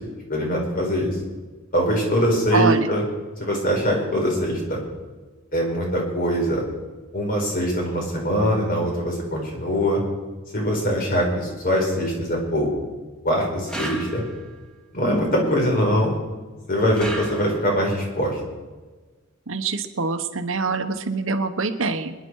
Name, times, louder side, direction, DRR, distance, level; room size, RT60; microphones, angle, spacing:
voice 1, 0.3-1.2 1.7-3.0 3.4-4.8 5.5-6.6 7.1-10.0 10.5-12.7 13.2-14.2 14.9-16.2 16.7-18.4, equal, 45° left, -1 dB, 4.7 m, -22 dB
voice 2, 2.5-2.9 19.5-22.1, right 4 dB, 70° right, 8 dB, 1.1 m, -24 dB
sound 1, 13.7-14.6 17.0-17.9, right 1 dB, 5° left, 1.9 m, -33 dB
26.0 x 10.5 x 4.7 m, 1.3 s
head